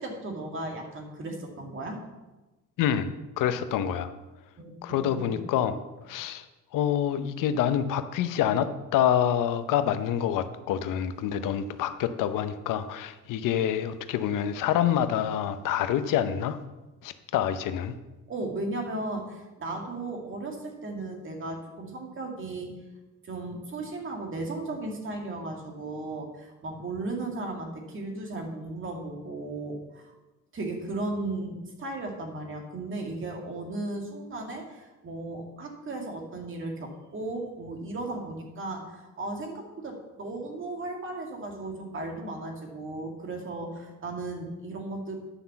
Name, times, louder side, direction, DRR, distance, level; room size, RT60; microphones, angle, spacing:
voice 1, 0.0-2.0 4.6-5.4 18.3-22.7 23.2-30.1 30.5-45.2, right 2 dB, 40° right, 1 dB, 2.2 m, -36 dB
voice 2, 2.8-3.1 3.4-4.1 4.8-5.7 6.1-6.4 6.7-16.6 17.0-17.9, left 10 dB, 85° left, 11 dB, 0.8 m, -27 dB
10.0 x 5.7 x 7.0 m, 1.1 s
cardioid pair, 130°, 31 cm